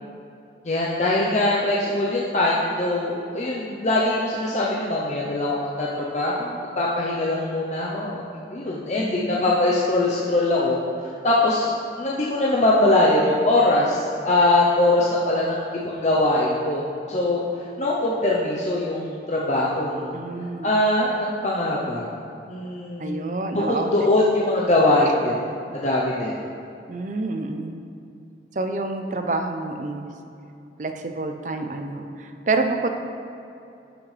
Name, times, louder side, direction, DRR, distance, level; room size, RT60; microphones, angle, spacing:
voice 1, 0.6-8.2 8.5-10.8 11.0-11.7 12.0-17.4 17.8-20.2 20.6-22.1 22.5-25.4 25.7-26.4, left 2 dB, 40° left, -5 dB, 0.7 m, -22 dB
voice 2, 9.0-9.5 20.1-20.7 23.0-23.9 26.9-27.8 28.6-30.1 30.8-32.9, right 3 dB, 45° right, 5 dB, 0.6 m, -28 dB
12.0 x 6.2 x 3.3 m, 2.7 s
head